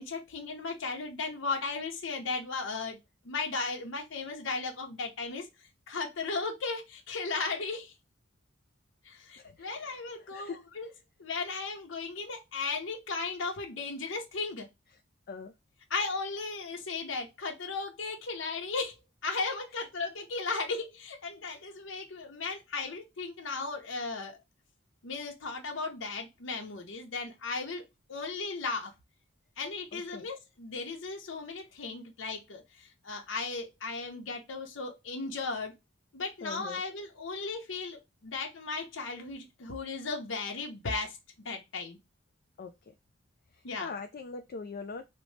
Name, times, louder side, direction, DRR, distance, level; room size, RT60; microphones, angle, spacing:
voice 1, 0.0-3.0 3.2-5.5 5.9-7.9 9.0-10.9 11.2-14.7 15.9-19.0 19.2-24.4 25.0-27.8 28.1-28.9 29.6-35.7 36.1-41.2 41.4-42.0 43.6-43.9, left 4 dB, 80° left, 0.8 m, -36 dB
voice 2, 9.4-10.9 15.3-15.5 29.9-30.3 36.4-36.8 42.6-42.7 43.8-45.1, left 4 dB, 50° left, 0.4 m, -42 dB
4.1 x 2.1 x 3.1 m
head